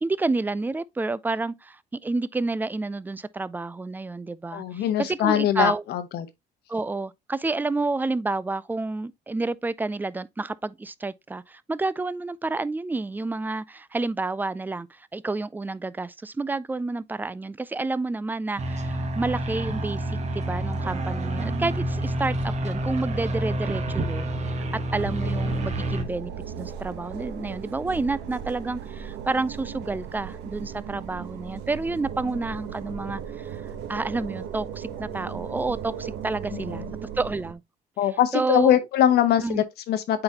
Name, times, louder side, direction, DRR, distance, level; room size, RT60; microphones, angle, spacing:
voice 1, 0.0-5.8 6.7-24.3 24.5-24.6 24.9-36.8 37.2-37.6 38.3-38.8 39.4-39.6, right 3 dB, 10° right, 0.4 m, -29 dB
voice 2, 4.5-6.3 36.5-36.9 38.0-40.2, left 11 dB, 75° left, 1.1 m, -23 dB
sound 1, 18.6-26.0, right 1 dB, 40° right, 1.3 m, -28 dB
sound 2, 25.0-37.5, right 8 dB, 85° right, 1.1 m, -37 dB
8.7 x 4.0 x 2.8 m
cardioid pair, 110°, 17 cm